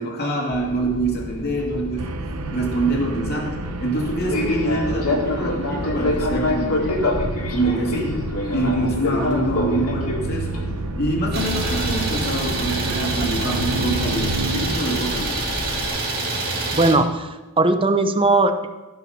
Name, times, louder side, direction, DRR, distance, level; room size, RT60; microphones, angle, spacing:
voice 1, 0.0-2.2 2.5-7.0 7.5-10.6 11.0-15.4, right 1 dB, 45° left, -1 dB, 2.5 m, -25 dB
Fixed-wing aircraft airplane, 0.5-15.9, left 2 dB, 85° left, 2.3 m, -28 dB
sound 1, 2.0-14.8, right 2 dB, 85° right, 0.9 m, -30 dB
Idling, 11.3-16.9, right 2 dB, 45° right, 2.3 m, -26 dB
voice 2, 16.7-17.3 17.6-18.7, right 2 dB, 25° right, 8 dB, 0.7 m, -18 dB
15.5 x 5.7 x 5.7 m, 1.1 s
head